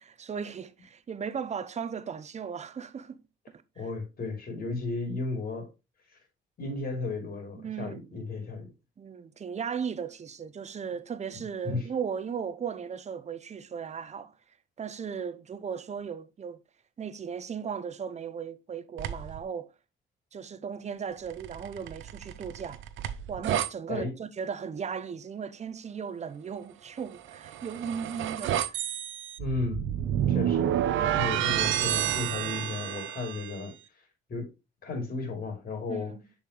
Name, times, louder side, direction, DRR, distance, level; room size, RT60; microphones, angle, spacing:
voice 1, 0.0-3.2 7.6-8.2 9.0-14.3 14.8-16.6 17.0-19.7 20.3-22.8 23.3-28.8 35.9-36.2, right 7 dB, 35° right, 0.7 m, -36 dB
voice 2, 3.8-5.7 6.1-6.2 6.6-8.7 11.3-11.8 23.9-24.1 29.4-29.9 30.3-30.7 31.1-33.7 34.3-34.5 34.8-36.1, left 3 dB, 50° left, 2.9 m, -34 dB
sound 1, 19.0-19.4 21.3-23.7 27.2-33.6, right 11 dB, 80° right, 0.7 m, -30 dB
6.8 x 5.5 x 3.1 m
cardioid pair, 90°, 20 cm